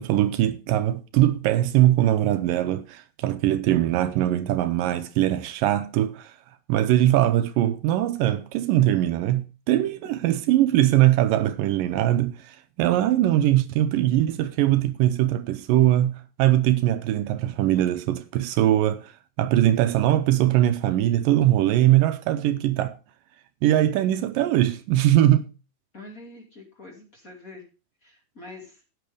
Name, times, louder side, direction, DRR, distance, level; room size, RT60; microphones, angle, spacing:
voice 1, 0.0-6.3 6.7-16.1 16.4-19.1 19.4-22.9 23.6-25.5, right 13 dB, 80° right, 2.4 m, -21 dB
voice 2, 25.9-27.7 28.0-28.8, left 2 dB, 25° left, 2.6 m, -45 dB
13.5 x 9.4 x 3.5 m
omnidirectional pair, 4.0 m